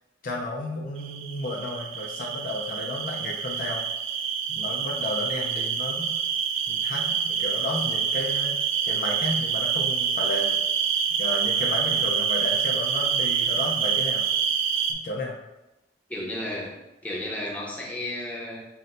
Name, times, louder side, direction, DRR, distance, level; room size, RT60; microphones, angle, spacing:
voice 1, 0.2-3.8 4.5-6.1 6.7-8.6 8.8-14.2 14.9-15.4, left 2 dB, 50° left, -2 dB, 0.4 m, -33 dB
sound 1, 1.0-14.9, right 7 dB, 85° right, 0.4 m, -26 dB
voice 2, 16.1-16.8 17.0-18.6, left 1 dB, 10° left, -4 dB, 0.7 m, -33 dB
5.7 x 2.1 x 2.5 m, 0.97 s
head